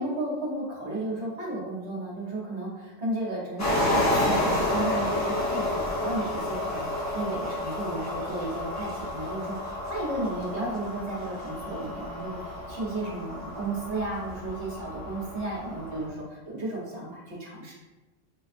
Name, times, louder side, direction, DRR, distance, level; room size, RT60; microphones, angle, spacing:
voice 1, 0.0-17.7, right 2 dB, 60° right, -4 dB, 1.3 m, -33 dB
sound 1, 3.6-16.1, left 1 dB, 15° left, 0.7 m, -30 dB
5.9 x 2.3 x 2.5 m, 1.1 s
omnidirectional pair, 1.3 m